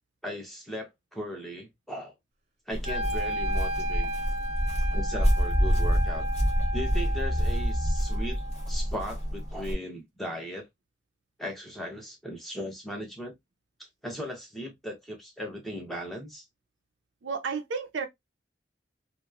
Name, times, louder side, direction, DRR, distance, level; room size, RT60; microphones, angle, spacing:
voice 1, 0.2-2.1 2.7-4.1 4.9-6.3 6.7-8.4 8.7-10.7 11.4-13.3 13.8-16.4, equal, ahead, 0.8 m, -38 dB
Walk footsteps, 2.7-9.7, equal, 35° left, 0.8 m, -27 dB
Wind instrument woodwind instrument, 2.8-8.9, equal, 35° right, 0.7 m, -34 dB
voice 2, 17.2-18.1, right 5 dB, 85° right, 0.5 m, -32 dB
2.9 x 2.0 x 2.3 m
head